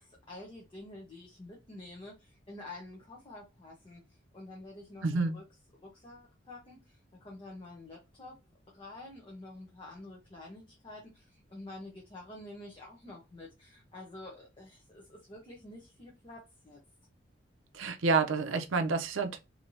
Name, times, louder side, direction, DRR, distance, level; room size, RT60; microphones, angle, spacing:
voice 1, 0.0-5.4 5.8-8.4 8.7-16.8, left 2 dB, 25° left, 0.8 m, -48 dB
voice 2, 5.0-5.4 17.7-19.4, right 4 dB, 85° right, 0.6 m, -29 dB
3.2 x 2.8 x 2.6 m
head